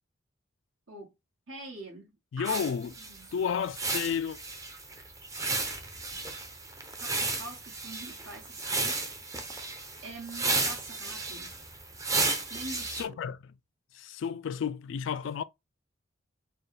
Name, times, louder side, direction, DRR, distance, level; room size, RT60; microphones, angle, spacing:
voice 1, 1.5-3.5 6.1-6.3 6.9-9.1 9.4-11.5 12.5-13.2, right 2 dB, 75° right, 1.7 m, -45 dB
voice 2, 2.3-2.9 3.3-4.4 13.0-13.4 13.9-15.4, left 7 dB, 65° left, 0.3 m, -31 dB
sound 1, 2.4-13.0, right 3 dB, 15° right, 0.6 m, -33 dB
4.2 x 2.4 x 3.3 m
head